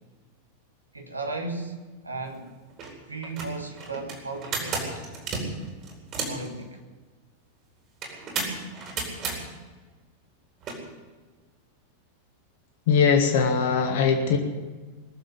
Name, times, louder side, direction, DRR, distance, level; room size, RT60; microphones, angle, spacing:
voice 1, 0.9-2.5 3.1-5.0 6.3-6.8, right 3 dB, 80° right, 4 dB, 1.8 m, -35 dB
sound 1, 2.3-2.4 2.7-2.9 3.2-6.5 8.0-9.4 10.6-10.8, right 4 dB, 35° right, 4.1 m, -32 dB
voice 2, 12.9-14.4, left 6 dB, 55° left, 3 dB, 1.6 m, -21 dB
21.0 x 7.3 x 9.4 m, 1.3 s
figure-of-eight pair, 90°, 0 cm